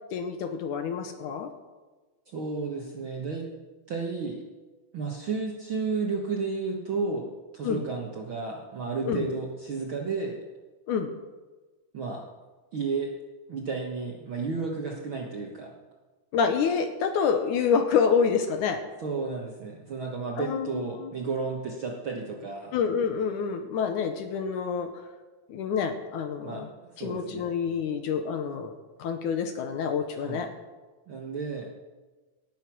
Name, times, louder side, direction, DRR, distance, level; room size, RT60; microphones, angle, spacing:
voice 1, 0.1-1.5 7.6-7.9 9.1-9.3 10.9-11.1 16.3-18.8 20.4-21.1 22.7-24.9 25.5-26.7 27.0-28.7 29.0-30.5, left 6 dB, 70° left, 7 dB, 2.2 m, -27 dB
voice 2, 2.3-3.5 3.9-4.4 4.9-10.4 11.9-12.2 12.7-13.1 13.5-15.7 19.0-22.7 26.4-26.7 26.9-27.5 30.2-30.5 31.1-31.7, right 4 dB, 55° right, 0 dB, 1.4 m, -32 dB
18.0 x 8.2 x 6.1 m, 1.3 s
omnidirectional pair, 4.0 m